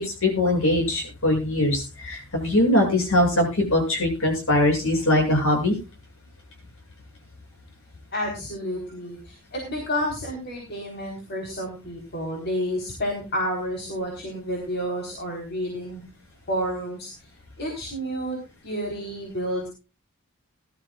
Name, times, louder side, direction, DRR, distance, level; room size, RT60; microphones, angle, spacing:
voice 1, 0.0-5.7, left 1 dB, 65° left, 2 dB, 7.8 m, -22 dB
voice 2, 8.1-16.1 16.5-17.1 17.6-18.4 18.6-19.7, equal, 50° left, 1 dB, 4.2 m, -30 dB
20.5 x 13.0 x 2.5 m, 0.31 s
head